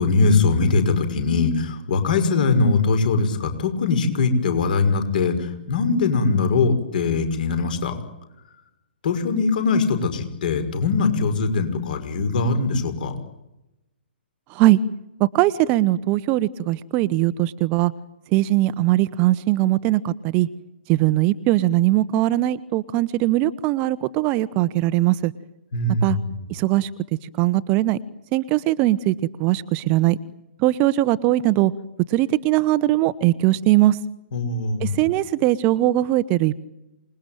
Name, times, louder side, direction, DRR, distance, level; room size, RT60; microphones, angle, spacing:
voice 1, 0.0-8.0 9.0-13.1 25.7-26.4 34.3-35.0, left 4 dB, 50° left, 8 dB, 5.8 m, -21 dB
voice 2, 15.2-17.9 18.3-20.5 20.9-25.3 26.0-26.2 26.5-26.9 27.4-28.0 28.3-29.1 29.4-30.2 30.6-31.7 32.1-34.0 34.8-36.6, right 16 dB, 25° right, 17 dB, 1.0 m, -20 dB
27.0 x 21.5 x 9.2 m, 0.90 s
figure-of-eight pair, 120°, 6 cm